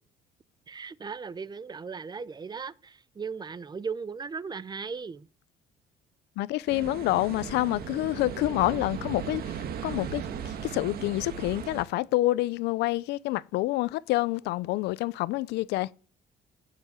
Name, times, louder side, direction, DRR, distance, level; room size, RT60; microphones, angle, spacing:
voice 1, 0.7-5.3, right 5 dB, 25° right, 0.7 m, -37 dB
voice 2, 6.4-15.9, left 17 dB, 85° left, 0.6 m, -28 dB
sound 1, 6.7-11.9, right 8 dB, 65° right, 1.8 m, -37 dB
16.0 x 7.1 x 8.1 m
cardioid pair, 110°, 17 cm